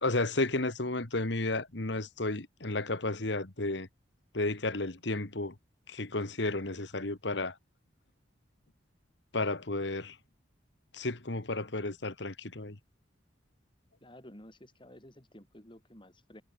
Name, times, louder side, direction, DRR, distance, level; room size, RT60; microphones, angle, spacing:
voice 1, 0.0-3.9 4.3-5.5 5.9-7.5 9.3-10.2 10.9-12.8, left 2 dB, 60° left, 1.9 m, -32 dB
voice 2, 14.0-16.4, left 1 dB, 25° left, 4.0 m, -53 dB
head